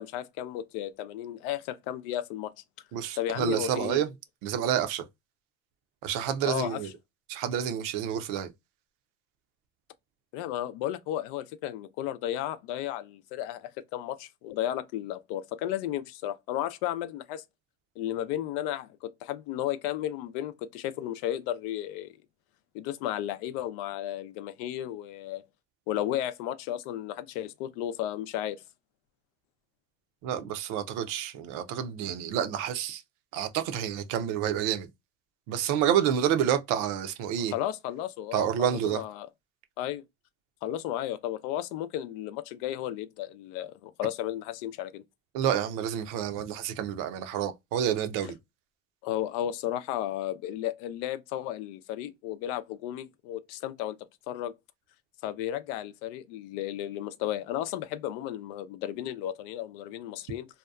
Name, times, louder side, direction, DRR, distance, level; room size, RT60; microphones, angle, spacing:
voice 1, 0.0-2.5 3.2-4.0 6.4-6.8 10.3-17.4 18.0-22.1 22.7-25.4 25.9-28.6 37.5-39.3 39.8-40.0 40.6-45.0 49.0-54.0 54.3-54.5 55.2-60.5, left 12 dB, 75° left, 0.5 m, -34 dB
voice 2, 2.9-4.1 4.4-5.0 6.0-6.9 7.3-8.5 30.2-33.0 33.3-34.9 35.5-37.5 38.3-39.0 45.3-48.4, right 9 dB, 70° right, 0.6 m, -29 dB
2.8 x 2.2 x 2.3 m
supercardioid pair, 100°, 34 cm